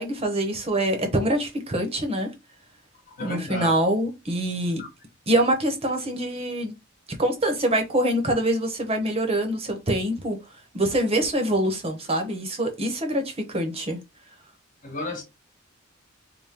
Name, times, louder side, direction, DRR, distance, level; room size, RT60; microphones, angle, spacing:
voice 1, 0.0-2.3 3.2-4.8 5.3-6.7 7.2-10.4 10.7-14.0, right 1 dB, 30° right, 0.9 m, -25 dB
voice 2, 3.1-3.8 4.8-4.9 14.8-15.2, left 2 dB, 40° left, 1.3 m, -33 dB
3.6 x 2.2 x 4.3 m
head